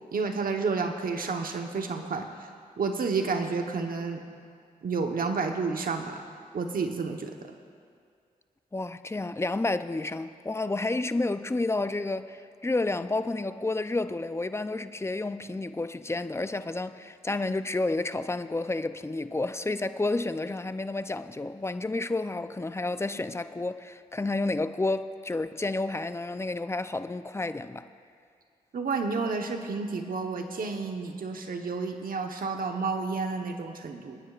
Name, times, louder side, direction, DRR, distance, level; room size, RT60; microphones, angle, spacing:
voice 1, 0.1-2.3 2.8-4.2 4.8-6.2 6.5-7.4 28.7-34.2, right 4 dB, 70° right, 1.1 m, -30 dB
voice 2, 8.7-27.8, left 2 dB, 15° left, 0.5 m, -30 dB
28.5 x 9.8 x 2.5 m
cardioid pair, 50°, 15 cm